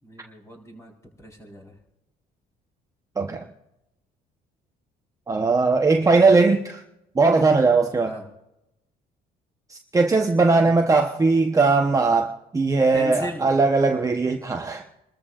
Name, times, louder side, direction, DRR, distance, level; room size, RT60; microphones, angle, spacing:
voice 1, 0.0-1.8 6.0-6.3 8.0-8.3 10.6-10.8 12.9-13.5, left 1 dB, 15° left, 0 dB, 4.5 m, -37 dB
voice 2, 5.3-6.8 7.2-8.1 9.7-14.8, right 3 dB, 20° right, 3 dB, 0.9 m, -19 dB
27.5 x 13.5 x 2.5 m, 0.89 s
cardioid pair, 110°, 17 cm